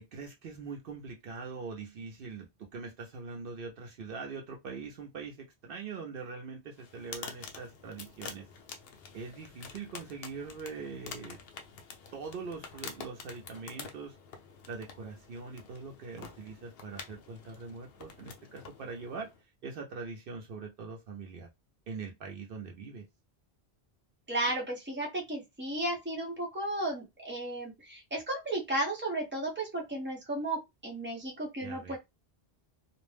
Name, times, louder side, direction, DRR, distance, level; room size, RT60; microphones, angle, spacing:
voice 1, 0.0-8.4 9.1-11.4 12.1-14.2 14.7-19.3 19.6-21.5 21.9-23.1 31.6-32.0, right 4 dB, 65° right, 0.7 m, -42 dB
sound 1, 6.8-19.4, left 6 dB, 75° left, 0.8 m, -48 dB
voice 2, 24.3-32.0, right 1 dB, 10° right, 0.7 m, -34 dB
2.5 x 2.0 x 3.2 m
omnidirectional pair, 1.1 m